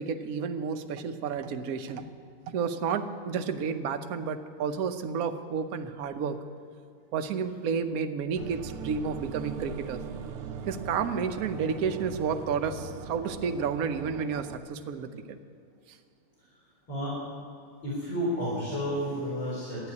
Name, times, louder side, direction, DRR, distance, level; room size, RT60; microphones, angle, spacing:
voice 1, 0.0-2.0 2.5-6.4 7.1-10.0 10.7-15.4, right 6 dB, 60° right, 7 dB, 0.9 m, -31 dB
sound 1, 8.3-14.6, right 5 dB, 90° right, 1.8 m, -40 dB
voice 2, 16.9-17.2 17.8-19.9, equal, 60° left, -8 dB, 4.9 m, -31 dB
12.5 x 10.0 x 9.5 m, 2.4 s
omnidirectional pair, 2.4 m